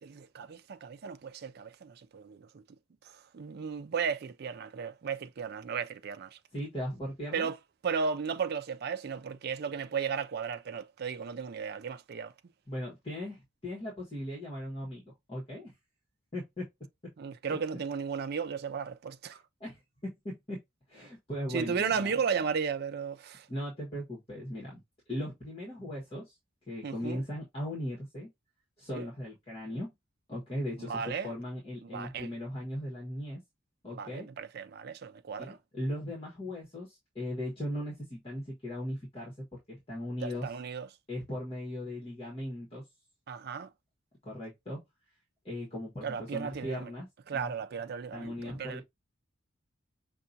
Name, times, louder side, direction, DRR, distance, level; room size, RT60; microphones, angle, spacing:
voice 1, 0.0-2.6 3.1-6.4 7.3-7.6 7.8-12.3 17.2-19.4 21.5-23.5 26.8-27.2 28.9-29.1 30.8-31.3 31.9-32.3 33.9-35.6 40.2-40.9 43.3-43.7 46.0-46.9 47.3-48.8, right 6 dB, 50° right, 0.4 m, -35 dB
voice 2, 6.5-7.5 12.7-15.7 16.3-16.7 19.6-20.6 20.9-22.1 23.5-24.8 25.1-26.3 26.7-28.3 28.8-29.9 30.3-33.4 33.8-34.3 35.4-40.5 41.1-42.8 44.2-44.8 45.4-47.1 47.3-47.5 48.1-48.8, left 1 dB, 30° left, 1.3 m, -38 dB
5.6 x 2.3 x 2.6 m
head